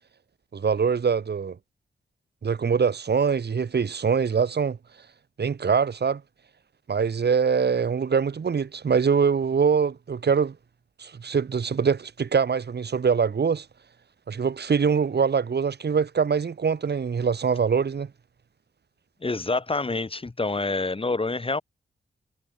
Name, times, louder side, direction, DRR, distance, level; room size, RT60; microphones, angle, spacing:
voice 1, 0.5-1.6 2.4-4.8 5.4-6.2 6.9-10.6 11.0-13.7 14.3-18.1, right 6 dB, 65° right, 4.3 m, -23 dB
voice 2, 19.2-21.6, left 3 dB, 30° left, 4.5 m, -27 dB
wide cardioid pair, 95°, 19 cm